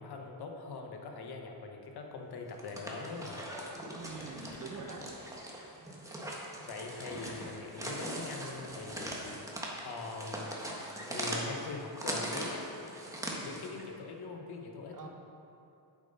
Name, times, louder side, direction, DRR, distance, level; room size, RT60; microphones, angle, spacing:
voice 1, 0.0-3.4 6.6-9.4 9.8-10.5 11.1-12.7 13.3-15.1, left 4 dB, 60° left, 3 dB, 1.2 m, -42 dB
sound 1, 2.5-13.8, right 1 dB, 5° right, 1.4 m, -40 dB
sound 2, 3.8-5.5 6.6-9.7, left 2 dB, 35° left, 1.3 m, -54 dB
voice 2, 3.9-5.2 5.6-5.7 14.9-15.1, right 4 dB, 45° right, 1 dB, 1.4 m, -45 dB
8.3 x 7.4 x 5.2 m, 2.8 s
cardioid pair, 110°, 43 cm